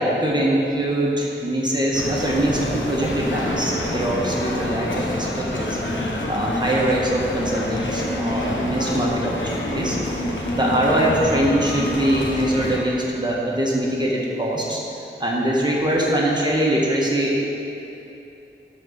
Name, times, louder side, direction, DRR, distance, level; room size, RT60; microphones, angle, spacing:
voice 1, 0.0-5.8 6.3-10.0 10.6-14.8 15.2-17.4, right 1 dB, 20° right, -4 dB, 1.5 m, -22 dB
sound 1, 1.9-12.8, left 1 dB, 85° left, 1.1 m, -27 dB
12.0 x 4.2 x 6.4 m, 3.0 s
wide cardioid pair, 90°, 19 cm